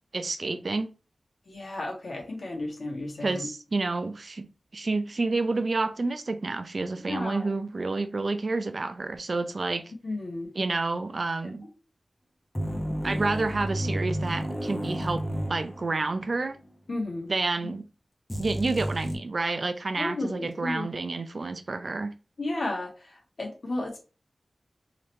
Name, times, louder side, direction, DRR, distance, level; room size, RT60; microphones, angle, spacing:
voice 1, 0.1-0.9 3.2-4.5 4.7-9.9 10.5-11.7 13.0-15.2 15.5-16.6 17.3-17.9 18.4-22.1, right 3 dB, 60° right, 0.5 m, -29 dB
voice 2, 1.5-3.5 7.1-7.5 10.0-10.5 16.9-17.3 20.0-20.9 22.4-24.0, left 2 dB, 75° left, 1.5 m, -33 dB
sound 1, 12.5-16.3 16.6-16.7 18.3-19.2, equal, 15° left, 0.8 m, -31 dB
3.8 x 3.0 x 3.2 m
wide cardioid pair, 55°, 0 cm